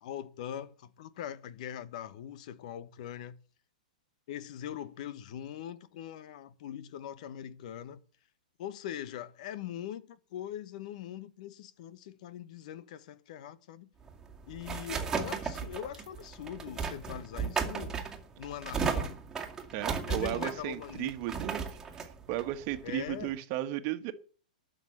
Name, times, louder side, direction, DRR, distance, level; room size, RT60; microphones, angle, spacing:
voice 1, 0.0-3.4 4.3-8.0 8.6-13.9 14.5-18.0 18.4-19.2 19.9-21.1 22.8-23.4, left 10 dB, 55° left, 1.3 m, -42 dB
sound 1, 14.0-23.3, right 5 dB, 10° right, 2.2 m, -36 dB
voice 2, 19.7-21.7 21.9-24.1, right 14 dB, 40° right, 1.5 m, -35 dB
12.0 x 6.7 x 8.5 m
hypercardioid pair, 135°, 5 cm